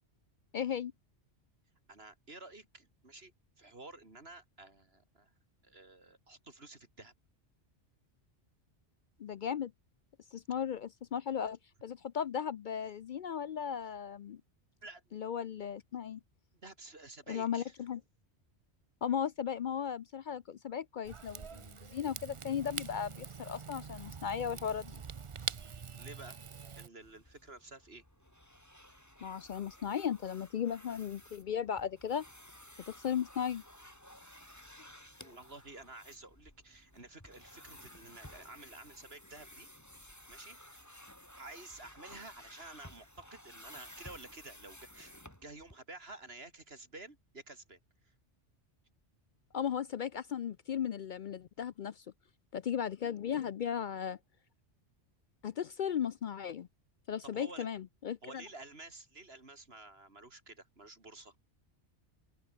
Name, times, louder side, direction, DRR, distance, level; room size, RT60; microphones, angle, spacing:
voice 1, 0.5-0.9 9.2-9.7 10.3-14.4 15.1-16.2 17.3-18.0 19.0-25.0 29.2-32.2 32.9-33.6 35.2-35.3 49.5-52.0 52.5-54.2 55.4-56.7 57.1-58.2, left 8 dB, 60° left, 0.5 m, -36 dB
voice 2, 1.9-5.3 5.6-7.1 14.8-15.2 16.6-17.8 26.0-26.4 26.7-28.0 35.2-40.9 41.4-45.1 45.4-48.1 57.2-57.7 58.2-61.4, right 2 dB, 60° right, 3.8 m, -51 dB
Rain / Fire, 21.0-26.9, right 6 dB, 35° right, 0.5 m, -44 dB
sound 1, 27.0-45.8, equal, 15° left, 5.7 m, -55 dB
open air
omnidirectional pair, 1.2 m